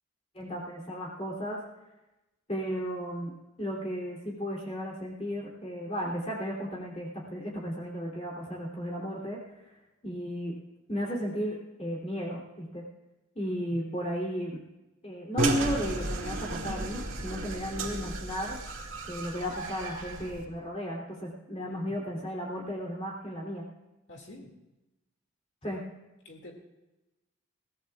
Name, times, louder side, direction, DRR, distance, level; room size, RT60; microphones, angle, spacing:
voice 1, 0.3-1.6 2.5-3.3 3.6-9.4 10.0-10.6 10.9-12.8 13.3-14.6 15.0-18.6 19.1-23.6 25.6-25.8, equal, 30° left, -3 dB, 3.0 m, -34 dB
sound 1, 15.4-20.5, right 2 dB, 80° right, 2.1 m, -34 dB
voice 2, 21.6-22.0 24.1-24.5 26.2-26.5, left 1 dB, 60° left, 0 dB, 2.2 m, -48 dB
22.5 x 17.5 x 2.4 m, 1.0 s
head